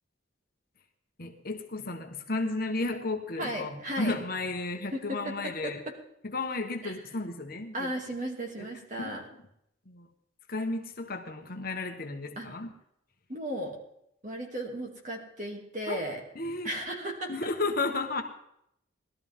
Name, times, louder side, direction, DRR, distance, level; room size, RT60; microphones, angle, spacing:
voice 1, 1.2-5.8 6.3-7.9 8.6-8.7 9.0-9.2 9.9-10.1 10.5-12.7 15.9-16.0 16.3-16.7 17.3-18.2, left 3 dB, 45° left, 5 dB, 1.3 m, -33 dB
voice 2, 3.4-4.1 4.9-5.7 6.8-7.0 7.7-9.2 12.4-12.5 13.3-13.8 14.2-16.2 16.6-17.3, right 1 dB, 40° right, 1 dB, 2.7 m, -35 dB
19.5 x 12.5 x 3.7 m, 0.75 s
head